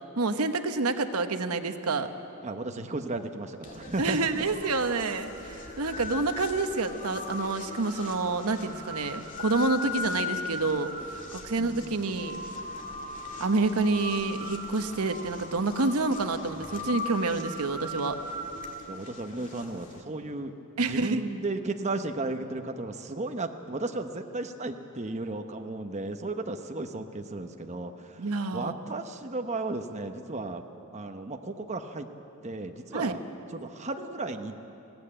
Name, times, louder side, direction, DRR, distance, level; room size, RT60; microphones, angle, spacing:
voice 1, 0.2-2.1 4.0-12.4 13.4-18.2 20.8-21.2 28.2-28.7 32.9-33.1, right 3 dB, 80° right, 8 dB, 1.0 m, -28 dB
voice 2, 2.4-4.2 11.6-12.0 18.9-20.5 20.9-30.6 30.9-32.1 32.4-33.2 33.5-34.6, right 2 dB, 30° right, 5 dB, 0.9 m, -34 dB
sound 1, 3.6-20.0, left 3 dB, 35° left, 2.3 m, -38 dB
20.5 x 17.0 x 8.8 m, 3.0 s
head